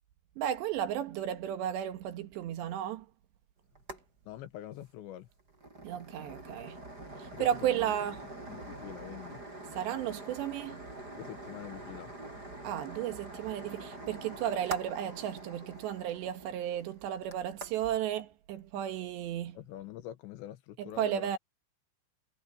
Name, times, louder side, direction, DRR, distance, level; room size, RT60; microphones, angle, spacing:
voice 1, 0.4-3.1 5.8-6.8 7.2-8.2 9.7-10.8 12.6-19.6 20.8-21.4, right 10 dB, 75° right, 3.5 m, -34 dB
sound 1, 3.8-4.0 4.3-4.4 4.7-4.9 5.3-18.0, right 2 dB, 20° right, 7.5 m, -45 dB
voice 2, 4.2-5.3 7.3-8.0 8.5-9.4 11.2-12.1 19.5-21.4, left 13 dB, 80° left, 3.3 m, -45 dB
omnidirectional pair, 5.2 m